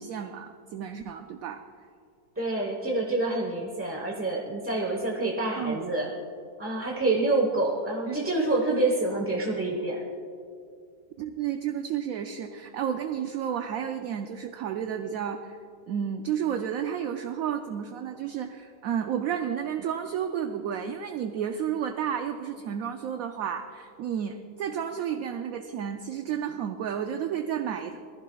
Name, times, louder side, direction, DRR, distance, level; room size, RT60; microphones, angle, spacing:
voice 1, 0.0-1.6 5.5-5.8 8.1-8.2 11.2-15.6 15.9-28.0, right 8 dB, 70° right, 6 dB, 0.9 m, -31 dB
voice 2, 2.4-6.1 6.6-10.0, right 2 dB, 10° right, -1 dB, 0.8 m, -27 dB
20.0 x 14.5 x 2.3 m, 2.5 s
omnidirectional pair, 1.8 m